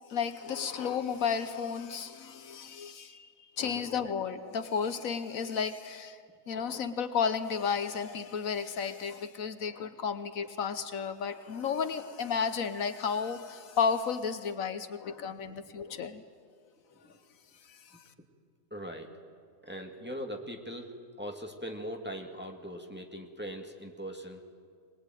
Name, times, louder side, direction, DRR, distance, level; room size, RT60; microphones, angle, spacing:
voice 1, 0.1-3.3 3.6-6.2 6.5-16.2 17.7-18.0, left 6 dB, 70° left, 11 dB, 1.3 m, -33 dB
voice 2, 18.7-19.1 19.6-20.9 21.2-24.4, equal, 5° right, 2 dB, 2.0 m, -40 dB
22.5 x 20.5 x 9.1 m, 2.1 s
omnidirectional pair, 1.5 m